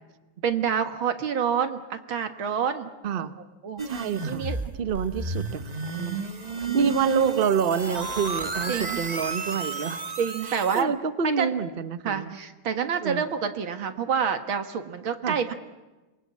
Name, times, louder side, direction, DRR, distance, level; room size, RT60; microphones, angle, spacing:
voice 1, 0.4-2.9 3.2-3.3 3.6-3.8 4.3-4.6 5.8-5.9 6.6-7.0 8.7-9.0 10.2-10.9 11.4-11.5 12.0-15.5, right 7 dB, 80° right, 8 dB, 2.5 m, -28 dB
voice 2, 3.0-3.3 3.8-4.4 4.8-5.6 6.0-6.2 6.7-10.0 10.4-12.4 13.0-13.2 15.2-15.4, right 6 dB, 45° right, 12 dB, 0.7 m, -27 dB
sound 1, 3.8-10.8, right 4 dB, 25° right, 1.3 m, -32 dB
27.5 x 22.0 x 8.5 m, 1.1 s
omnidirectional pair, 2.2 m